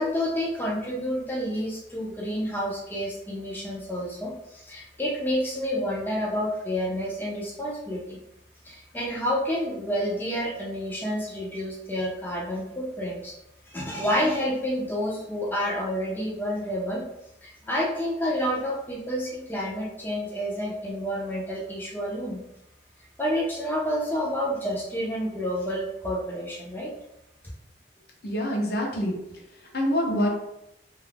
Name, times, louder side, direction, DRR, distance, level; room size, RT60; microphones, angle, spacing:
voice 1, 0.0-8.2 8.6-13.4 13.7-17.1 17.4-22.4 23.2-26.9, equal, 10° left, -4 dB, 0.4 m, -29 dB
voice 2, 28.2-30.3, equal, 55° left, -1 dB, 0.6 m, -27 dB
2.3 x 2.0 x 3.3 m, 0.84 s
head